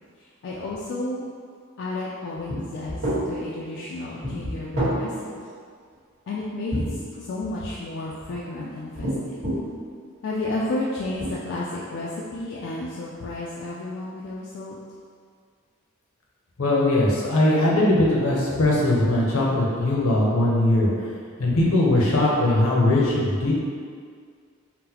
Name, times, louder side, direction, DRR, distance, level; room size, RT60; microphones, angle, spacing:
voice 1, 0.2-1.2 1.8-5.5 6.3-9.4 10.2-14.8, left 2 dB, 55° left, -5 dB, 0.3 m, -32 dB
sound 1, 2.5-2.6 2.9-3.2 4.2-5.0 6.7-7.5 8.1-8.4 9.0-9.7 10.5-10.6 11.0-11.3, equal, 80° right, 1.3 m, -27 dB
voice 2, 16.6-20.9 21.4-23.5, left 1 dB, 75° left, -4 dB, 0.7 m, -20 dB
3.8 x 2.1 x 2.8 m, 2.1 s
head